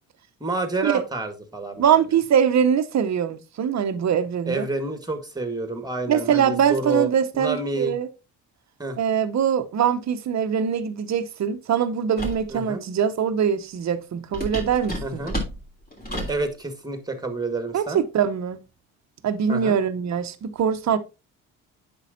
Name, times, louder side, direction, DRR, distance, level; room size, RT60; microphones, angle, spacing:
voice 1, 0.4-2.0 4.5-7.1 7.3-8.0 8.8-9.0 12.5-12.8 15.0-15.4 16.3-18.0 19.5-19.8, right 3 dB, 10° right, 1.8 m, -28 dB
voice 2, 1.8-4.7 6.1-8.1 9.0-15.2 17.7-18.6 19.2-21.0, right 8 dB, 45° right, 0.9 m, -23 dB
sound 1, 12.2-12.5 14.3-16.4, equal, 25° left, 3.4 m, -31 dB
8.2 x 6.2 x 2.7 m
hypercardioid pair, 55°, 39 cm